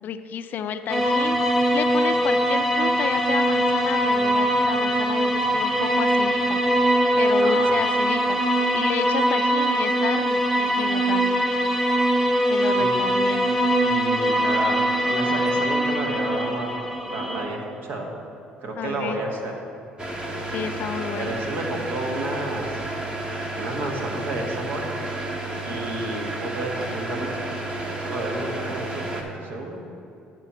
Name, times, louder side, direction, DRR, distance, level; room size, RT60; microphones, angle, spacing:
voice 1, 0.0-6.6 7.1-11.4 12.5-13.5 18.8-19.2 20.5-21.3, left 8 dB, 60° left, 10 dB, 0.4 m, -31 dB
sound 1, 0.9-17.5, right 1 dB, 5° right, 1.0 m, -22 dB
voice 2, 13.9-16.8 17.1-18.1 18.6-19.5 21.1-22.8 23.6-24.9 25.6-27.4 27.8-29.8, right 2 dB, 65° right, 1 dB, 1.4 m, -31 dB
sound 2, 20.0-29.2, right 2 dB, 25° right, 1.2 m, -31 dB
9.8 x 4.5 x 5.6 m, 2.7 s
supercardioid pair, 70°, 4 cm